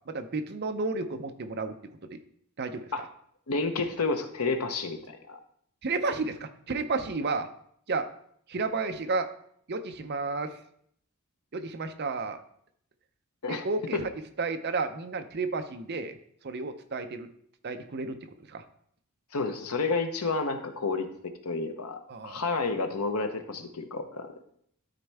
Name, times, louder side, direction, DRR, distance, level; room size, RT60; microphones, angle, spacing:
voice 1, 0.1-1.7 2.1-2.2 2.6-2.9 5.8-7.5 7.9-8.1 8.5-9.3 9.7-10.5 11.5-12.4 13.5-14.1 14.4-16.2 16.4-17.3 17.6-18.2 18.5-18.6 22.1-22.4, right 3 dB, 50° right, 8 dB, 0.6 m, -31 dB
voice 2, 3.5-5.4 13.4-13.7 19.3-21.1 21.4-24.4, left 3 dB, 85° left, 6 dB, 0.9 m, -30 dB
12.5 x 4.3 x 3.4 m, 0.66 s
head